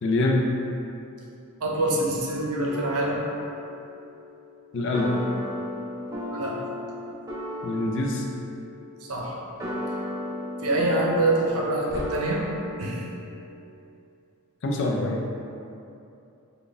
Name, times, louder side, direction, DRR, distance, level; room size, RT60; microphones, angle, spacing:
voice 1, 0.0-0.5 4.7-5.1 7.6-8.3 14.6-15.3, left 2 dB, 55° left, 0 dB, 0.4 m, -24 dB
voice 2, 1.6-3.2 6.3-6.5 9.1-9.3 10.6-12.4 12.8-13.0, right 2 dB, 80° right, -3 dB, 0.6 m, -25 dB
sound 1, 2.7-13.4, left 1 dB, 15° right, 0.5 m, -35 dB
4.0 x 2.3 x 3.4 m, 2.7 s
head